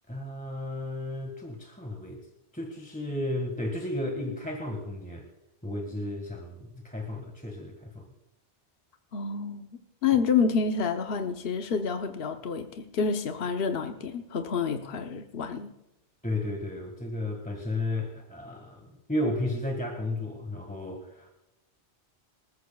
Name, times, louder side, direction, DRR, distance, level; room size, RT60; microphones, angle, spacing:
voice 1, 0.1-2.2 2.5-5.3 5.6-8.1 16.2-21.3, left 1 dB, 10° left, 2 dB, 1.7 m, -33 dB
voice 2, 9.1-15.7, left 5 dB, 65° left, 5 dB, 1.0 m, -28 dB
27.0 x 14.5 x 2.3 m, 0.94 s
omnidirectional pair, 1.1 m